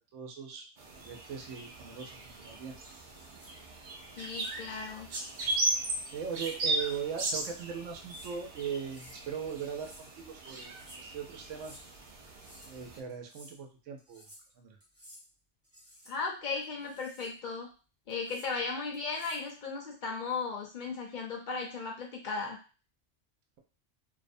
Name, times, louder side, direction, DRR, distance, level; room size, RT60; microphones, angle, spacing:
voice 1, 0.1-0.7 0.9-2.8 5.8-11.8 12.6-14.3 14.6-14.8, right 7 dB, 85° right, 4 dB, 0.9 m, -40 dB
sound 1, 0.8-13.0, right 2 dB, 60° right, 0.5 m, -37 dB
sound 2, 3.1-3.5 4.2-4.5 5.3-5.6 6.2-6.6 7.0-7.6 7.9-8.3 8.8-9.2 9.6-10.1 10.6-11.0 11.5-11.8 12.3-12.8 13.1-13.5 14.0-14.5 14.8-15.2 15.6-16.1 16.6-17.3 18.1-18.5 18.9-19.5, equal, 15° right, 0.7 m, -55 dB
voice 2, 4.1-5.1 16.1-17.7 18.1-22.6, left 4 dB, 50° left, 0 dB, 0.7 m, -36 dB
2.6 x 2.1 x 2.5 m, 0.34 s
omnidirectional pair, 1.2 m